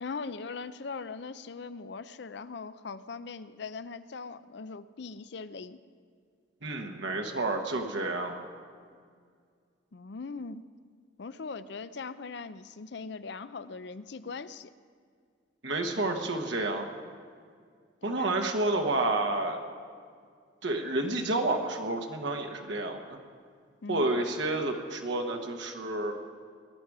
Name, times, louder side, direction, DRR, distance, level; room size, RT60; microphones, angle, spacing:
voice 1, 0.0-5.8 9.9-10.6 11.2-14.7 18.0-18.3 23.8-24.1, left 4 dB, 60° left, 14 dB, 0.5 m, -40 dB
voice 2, 6.6-8.4 15.6-16.9 18.0-19.6 20.6-23.2 23.9-26.1, right 2 dB, 65° right, 3 dB, 1.2 m, -30 dB
20.5 x 11.0 x 4.8 m, 2.1 s
head